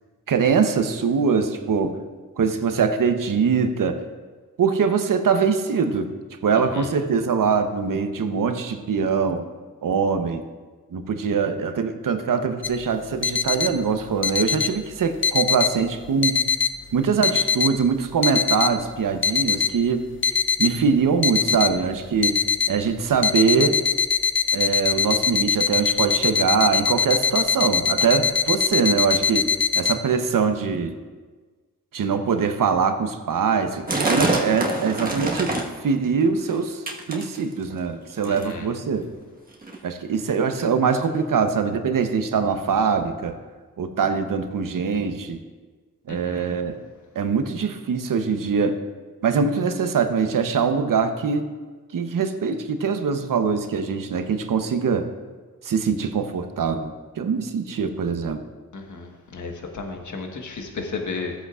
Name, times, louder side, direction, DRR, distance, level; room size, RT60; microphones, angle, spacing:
voice 1, 0.3-2.0 2.4-4.0 4.6-6.1 6.4-9.4 9.8-10.4 10.9-16.5 16.9-20.1 20.6-22.4 22.7-23.9 24.5-31.0 31.9-35.6 35.8-39.0 39.8-43.4 43.8-45.4 46.1-46.8 47.1-48.8 49.2-51.5 51.9-55.1 55.6-58.4, right 5 dB, 65° right, 7 dB, 0.9 m, -23 dB
sound 1, 12.6-30.0, left 6 dB, 35° left, 0.6 m, -23 dB
sound 2, 33.9-35.8 36.2-36.6 36.9-37.7 38.2-38.6 39.3-39.4 39.6-39.8 40.4-40.5 41.2-41.3, right 2 dB, 25° right, 1.4 m, -25 dB
voice 2, 38.3-38.7 46.1-46.5 58.7-61.3, left 4 dB, 55° left, 3 dB, 1.4 m, -33 dB
15.5 x 8.1 x 2.4 m, 1.4 s
cardioid pair, 60°, 35 cm